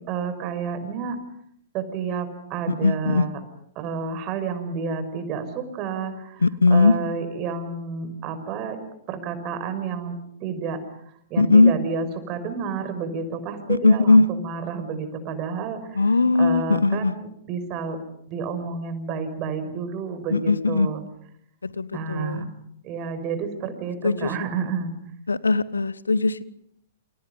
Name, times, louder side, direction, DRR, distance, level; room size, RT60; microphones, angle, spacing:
voice 1, 0.1-1.2 1.7-3.4 3.8-6.4 6.7-8.8 9.1-10.8 11.3-18.0 18.3-21.0 21.9-22.5 22.8-24.9, right 5 dB, 35° right, 10 dB, 5.8 m, -30 dB
voice 2, 2.7-3.2 6.4-6.9 11.4-11.7 13.7-14.3 15.9-17.1 20.3-20.9 21.6-22.4 24.0-24.3 25.3-26.4, left 3 dB, 80° left, 18 dB, 1.2 m, -19 dB
29.0 x 28.5 x 5.4 m, 0.71 s
figure-of-eight pair, 110°, 0 cm